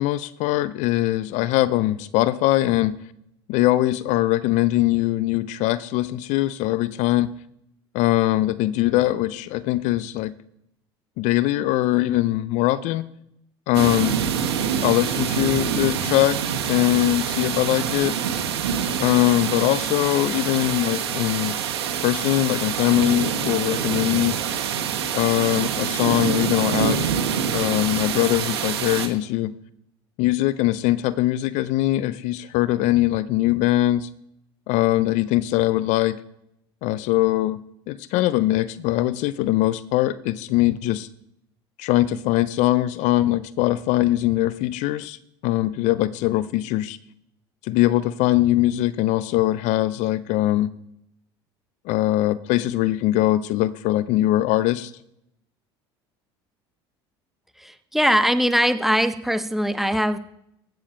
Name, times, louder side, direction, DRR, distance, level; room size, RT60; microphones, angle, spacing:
voice 1, 0.0-3.0 3.5-7.3 7.9-10.3 11.2-13.0 13.7-14.2 14.8-16.4 16.7-18.2 19.0-21.6 22.0-24.4 25.1-27.1 27.5-29.5 30.2-34.1 34.7-36.2 36.8-37.6 37.9-41.1 41.8-45.2 45.4-47.0 47.6-50.7 51.9-54.9, left 16 dB, 65° left, 16 dB, 0.5 m, -21 dB
sound 1, 13.7-29.1, right 7 dB, 85° right, 1.1 m, -26 dB
voice 2, 57.6-60.2, equal, ahead, 11 dB, 0.8 m, -21 dB
15.5 x 7.0 x 4.4 m, 0.77 s
hypercardioid pair, 70°, 13 cm